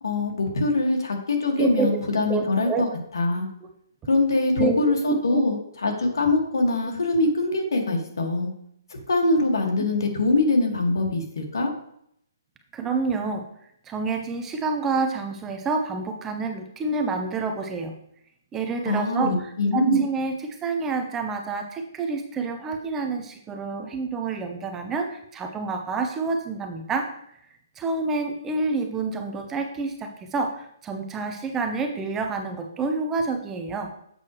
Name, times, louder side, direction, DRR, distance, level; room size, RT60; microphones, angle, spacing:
voice 1, 0.0-2.9 3.1-3.5 4.1-8.5 9.1-11.7 18.9-20.0, left 2 dB, 85° left, 2 dB, 1.8 m, -23 dB
voice 2, 1.6-2.0 2.3-2.8 4.5-5.4 12.7-13.4 13.9-17.9 18.5-27.1 27.8-33.9, right 4 dB, 10° right, 5 dB, 0.6 m, -28 dB
7.6 x 6.1 x 3.1 m, 0.71 s
hypercardioid pair, 160°, 2 cm